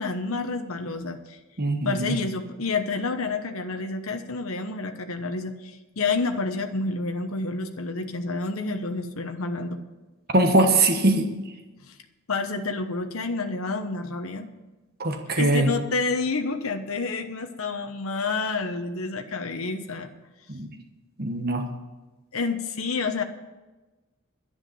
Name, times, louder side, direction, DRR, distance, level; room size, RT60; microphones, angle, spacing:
voice 1, 0.0-1.4 1.8-9.8 11.9-12.0 12.3-14.5 15.4-20.1 22.3-23.2, left 3 dB, 75° left, 6 dB, 1.0 m, -29 dB
voice 2, 1.6-2.1 10.3-11.3 15.0-15.7 20.5-20.7 21.2-21.6, right 2 dB, 45° right, 5 dB, 1.3 m, -21 dB
10.5 x 10.5 x 6.9 m, 1.2 s
head